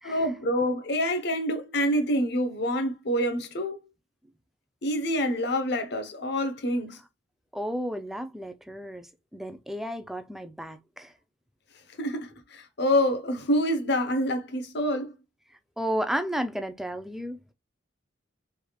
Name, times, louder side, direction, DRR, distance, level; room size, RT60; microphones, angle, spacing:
voice 1, 0.0-3.8 4.8-7.0 12.0-15.1, equal, 65° left, 0.9 m, -27 dB
voice 2, 7.5-11.1 15.8-17.4, equal, ahead, 0.5 m, -33 dB
4.9 x 3.4 x 2.3 m
head